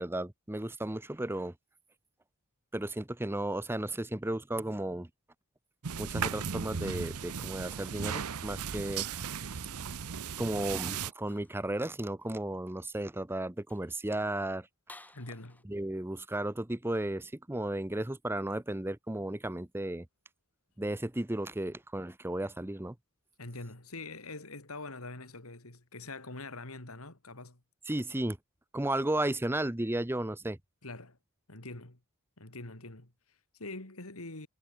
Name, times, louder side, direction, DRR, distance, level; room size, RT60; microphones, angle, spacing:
voice 1, 0.0-1.5 2.7-5.1 6.0-9.2 10.4-14.7 15.7-20.1 20.8-22.9 27.9-28.4 28.7-30.6, right 1 dB, 10° right, 0.7 m, -34 dB
sound 1, 5.8-11.1, right 7 dB, 90° right, 0.8 m, -36 dB
sound 2, 11.2-11.7 12.2-12.4 13.0-13.1 13.6-14.0 14.9-15.6, left 2 dB, 5° left, 4.0 m, -57 dB
voice 2, 15.1-15.7 23.4-27.6 30.8-31.2 31.5-32.0 32.4-34.5, left 2 dB, 75° left, 3.4 m, -44 dB
head